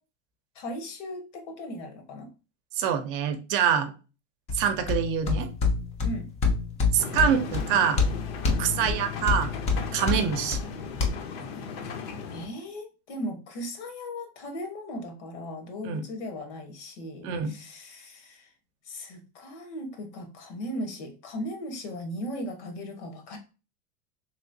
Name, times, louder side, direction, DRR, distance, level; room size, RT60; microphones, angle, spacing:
voice 1, 0.5-2.3 6.0-6.3 8.7-9.0 10.1-10.3 12.3-18.5 18.9-23.4, equal, 80° left, 5 dB, 1.2 m, -37 dB
voice 2, 2.8-3.9 4.5-5.5 6.9-8.0 8.6-9.5 9.9-10.6 15.8-16.0 17.2-17.6, right 8 dB, 55° right, 9 dB, 0.6 m, -25 dB
sound 1, 4.5-11.1, left 4 dB, 20° left, 0.4 m, -28 dB
sound 2, 7.0-12.5, left 5 dB, 65° left, 0.7 m, -37 dB
3.1 x 2.8 x 2.6 m, 0.32 s
supercardioid pair, 145°, 34 cm